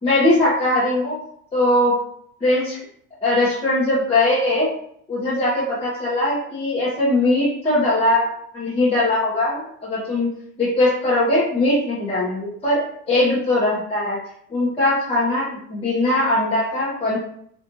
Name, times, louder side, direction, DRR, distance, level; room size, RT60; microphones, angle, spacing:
voice 1, 0.0-1.2 1.5-1.9 2.4-2.8 3.2-4.7 5.1-10.3 10.6-14.2 14.5-17.2, left 1 dB, 15° left, -8 dB, 0.9 m, -20 dB
4.0 x 2.5 x 2.7 m, 0.65 s
cardioid pair, 145°, 36 cm